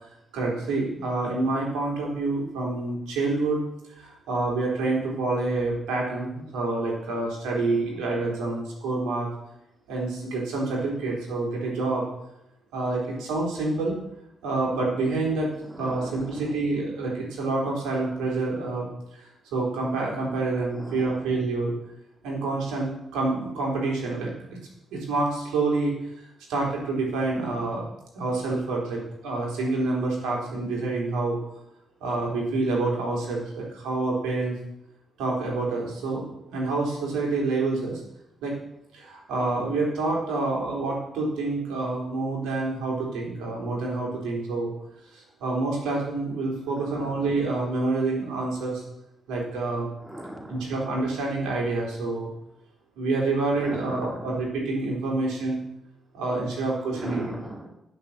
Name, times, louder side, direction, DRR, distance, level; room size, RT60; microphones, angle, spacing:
voice 1, 0.3-3.6 3.9-9.3 9.9-12.0 12.7-14.0 14.4-15.5 15.8-18.9 19.5-21.7 22.2-24.3 24.9-25.9 26.5-27.8 28.1-31.4 32.0-34.5 35.2-36.2 36.5-38.0 38.4-38.6 38.9-44.7 45.1-48.8 49.3-49.9 50.5-52.3 53.0-55.6 56.1-57.3, right 3 dB, 85° right, -2 dB, 3.8 m, -27 dB
voice 2, 15.6-16.5 20.7-21.2 46.7-47.3 50.0-50.7 53.5-54.3 56.9-57.7, right 1 dB, 15° right, 1 dB, 2.5 m, -39 dB
10.5 x 6.0 x 7.4 m, 0.84 s
cardioid pair, 70°, 0 cm